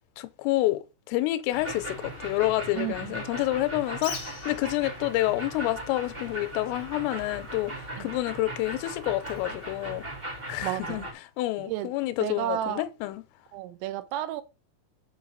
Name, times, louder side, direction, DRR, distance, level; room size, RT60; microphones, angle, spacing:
voice 1, 0.2-10.0 10.5-11.1 11.4-13.2, left 17 dB, 85° left, 3.2 m, -28 dB
sound 1, 1.5-11.1, right 1 dB, 35° right, 0.9 m, -38 dB
voice 2, 2.7-3.2 8.0-8.1 10.6-11.0 11.6-11.9 12.2-12.9 13.5-14.4, right 13 dB, 85° right, 3.4 m, -32 dB
Bird, 3.9-10.6, left 4 dB, 50° left, 1.2 m, -47 dB
7.9 x 5.0 x 6.3 m
omnidirectional pair, 5.9 m